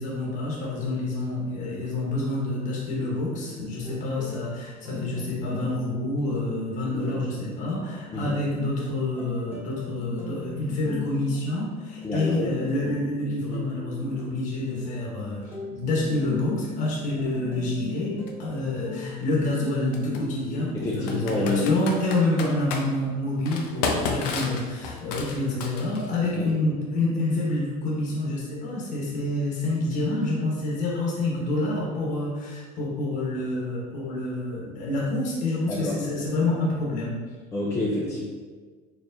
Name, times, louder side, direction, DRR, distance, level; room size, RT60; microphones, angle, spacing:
voice 1, 0.0-37.2, left 2 dB, 40° left, -4 dB, 1.0 m, -28 dB
sound 1, 3.0-20.9, left 2 dB, 10° right, 1.2 m, -40 dB
voice 2, 12.0-12.4 20.7-21.9 26.4-26.6 35.7-36.0 37.5-38.2, left 2 dB, 15° left, -5 dB, 0.4 m, -27 dB
Computer keyboard, 18.3-18.4 19.9-20.2 21.1-22.8 23.5-26.1, left 4 dB, 85° left, 0.6 m, -31 dB
4.3 x 3.1 x 2.6 m, 1.5 s
cardioid pair, 140°, 20 cm